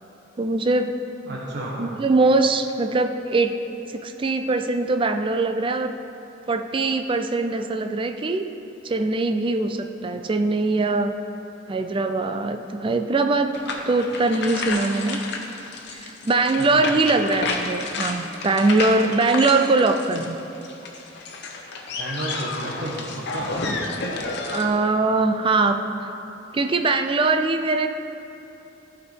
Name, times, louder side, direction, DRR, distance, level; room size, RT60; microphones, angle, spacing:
voice 1, 0.4-1.0 1.8-3.6 3.9-6.0 6.5-8.4 8.8-11.1 11.7-13.5 13.8-15.2 15.9-20.4 24.0-24.2 24.5-25.8 26.5-27.9, right 3 dB, 25° right, 7 dB, 0.4 m, -22 dB
voice 2, 1.2-1.8 16.6-17.0 21.9-23.5, right 1 dB, 60° right, -4 dB, 1.2 m, -32 dB
sound 1, 13.5-24.7, left 3 dB, 60° left, 0.9 m, -31 dB
14.5 x 5.1 x 4.5 m, 3.0 s
head